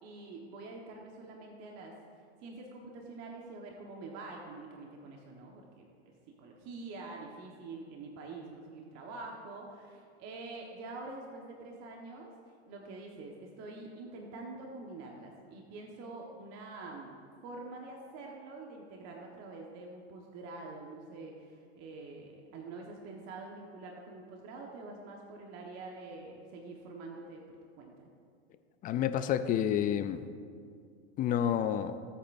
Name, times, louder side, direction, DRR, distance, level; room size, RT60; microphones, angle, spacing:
voice 1, 0.0-1.9 2.4-6.1 6.4-12.3 12.7-17.2 17.4-27.4 27.8-28.1, right 3 dB, 45° right, 0 dB, 1.4 m, -46 dB
voice 2, 28.8-30.3 31.2-32.0, left 9 dB, 25° left, 10 dB, 0.4 m, -29 dB
17.5 x 8.3 x 2.6 m, 2.3 s
hypercardioid pair, 110°, 34 cm